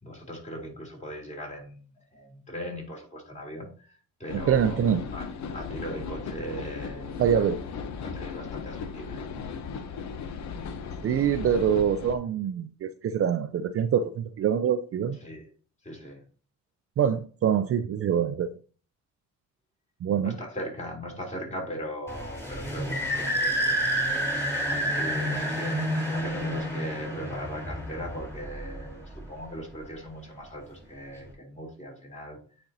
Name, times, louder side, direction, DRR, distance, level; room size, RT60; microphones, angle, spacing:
voice 1, 0.0-4.8 5.1-7.4 8.0-9.2 15.2-15.5 15.8-16.2 20.2-24.0 24.7-32.4, equal, 25° left, 3.2 m, -39 dB
sound 1, 4.3-12.2, left 5 dB, 65° left, 0.9 m, -37 dB
voice 2, 4.5-5.0 7.2-7.6 11.0-15.2 17.0-18.5 20.0-20.3, right 8 dB, 50° right, 0.5 m, -25 dB
sound 2, 22.1-29.4, right 1 dB, 10° left, 2.9 m, -29 dB
9.0 x 4.3 x 2.8 m
cardioid pair, 90°, 30 cm